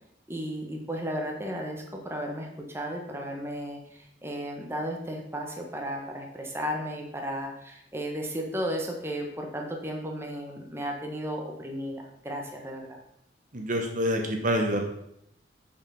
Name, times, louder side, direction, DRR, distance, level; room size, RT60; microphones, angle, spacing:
voice 1, 0.3-13.0, equal, 15° right, 1 dB, 1.3 m, -34 dB
voice 2, 13.5-14.9, equal, 45° right, 3 dB, 1.0 m, -27 dB
6.7 x 6.0 x 5.6 m, 0.75 s
head